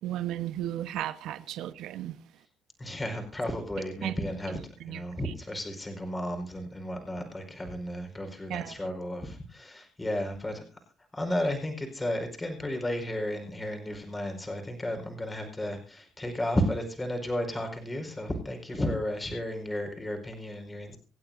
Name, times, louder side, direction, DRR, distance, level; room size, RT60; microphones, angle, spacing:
voice 1, 0.0-2.1 4.0-4.1 4.8-5.0 8.5-8.8, right 13 dB, 80° right, 1.1 m, -34 dB
voice 2, 2.8-4.6 4.9-10.6 11.1-21.0, left 1 dB, 20° left, 4.8 m, -33 dB
26.5 x 8.9 x 2.7 m
cardioid pair, 80°, 0 cm